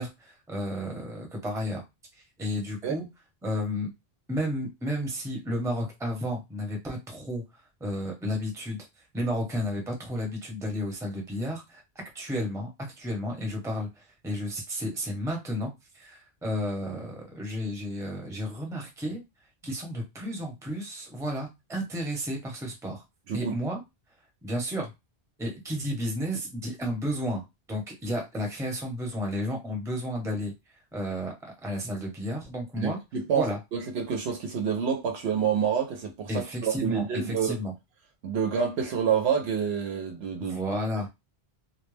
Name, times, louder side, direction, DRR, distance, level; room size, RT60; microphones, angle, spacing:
voice 1, 0.0-1.8 2.4-3.1 3.4-3.9 4.3-7.4 7.8-8.8 9.1-11.8 12.1-12.7 13.0-19.2 19.6-23.0 23.3-23.8 24.4-24.9 25.4-27.4 27.7-30.5 30.9-33.0 33.3-33.6 36.3-37.7 40.4-41.1, equal, 5° right, 0.6 m, -32 dB
voice 2, 32.8-37.6 38.2-40.6, right 7 dB, 90° right, 0.9 m, -28 dB
2.3 x 2.1 x 3.2 m
omnidirectional pair, 1.1 m